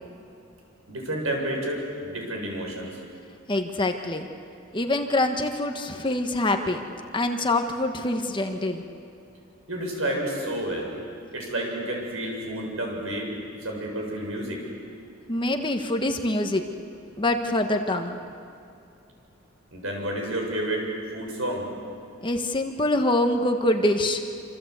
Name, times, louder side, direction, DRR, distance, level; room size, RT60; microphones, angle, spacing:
voice 1, 0.9-3.0 9.7-10.9 11.3-13.3 13.6-14.6 19.7-20.9 21.1-21.7, right 1 dB, 80° right, 0 dB, 7.1 m, -30 dB
voice 2, 3.5-4.3 4.7-6.8 7.1-8.8 15.3-16.6 17.2-18.2 22.2-24.2, left 1 dB, 25° left, 5 dB, 1.4 m, -25 dB
27.0 x 26.5 x 8.2 m, 2.6 s
head